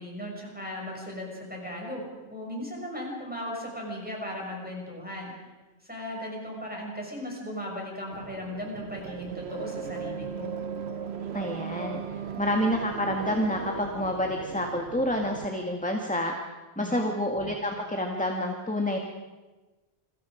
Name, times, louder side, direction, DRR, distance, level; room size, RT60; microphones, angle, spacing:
voice 1, 0.0-5.5 5.8-10.5 16.8-17.1, equal, 10° right, -2 dB, 6.8 m, -37 dB
sound 1, 8.1-15.5, right 7 dB, 80° right, 1.3 m, -37 dB
voice 2, 11.3-12.0 12.4-16.3 16.8-19.0, left 1 dB, 5° left, 2 dB, 1.9 m, -28 dB
29.5 x 22.5 x 5.1 m, 1.2 s
omnidirectional pair, 1.1 m